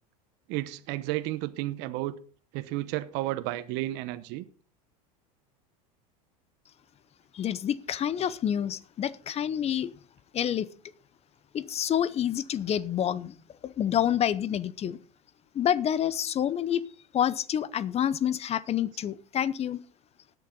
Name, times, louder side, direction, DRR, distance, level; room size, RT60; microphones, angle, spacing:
voice 1, 0.5-2.2 2.5-4.4, right 17 dB, 60° right, 0.9 m, -32 dB
voice 2, 7.3-9.9 10.3-10.7 11.5-13.3 13.6-15.0 15.5-16.8 17.1-19.8, left 10 dB, 30° left, 0.8 m, -28 dB
19.0 x 6.9 x 3.9 m
supercardioid pair, 105°, 19 cm